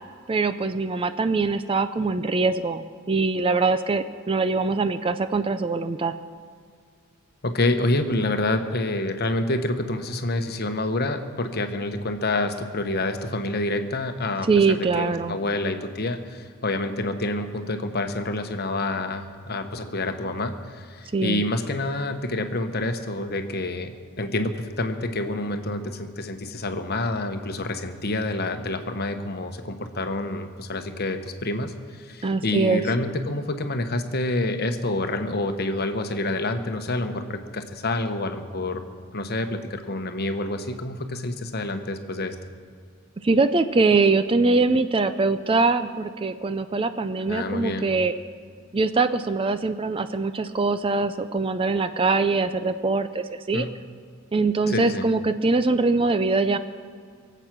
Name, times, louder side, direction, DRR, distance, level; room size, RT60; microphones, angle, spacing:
voice 1, 0.3-6.1 14.5-15.4 21.1-21.4 32.2-32.8 43.2-48.1 48.7-53.7 54.3-56.6, right 3 dB, 25° right, 11 dB, 0.4 m, -23 dB
voice 2, 7.4-38.8 39.1-42.3 47.3-47.9 53.5-53.7 54.7-55.0, left 2 dB, 45° left, 7 dB, 1.0 m, -28 dB
23.5 x 8.1 x 6.0 m, 2.1 s
head